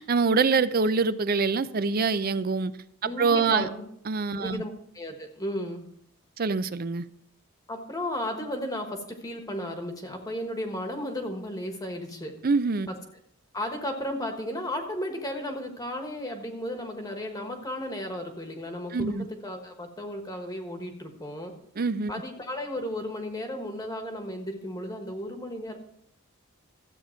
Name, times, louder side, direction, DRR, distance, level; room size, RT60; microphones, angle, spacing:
voice 1, 0.0-2.7 3.2-3.7 4.1-4.6 6.4-7.0 12.4-12.9 18.9-19.3 21.8-22.1, right 4 dB, 45° right, 0.5 m, -25 dB
voice 2, 3.0-3.8 4.3-5.9 7.7-12.3 12.9-13.0 13.5-21.5 22.1-25.8, left 1 dB, 15° left, 1.3 m, -34 dB
14.0 x 8.3 x 4.4 m
head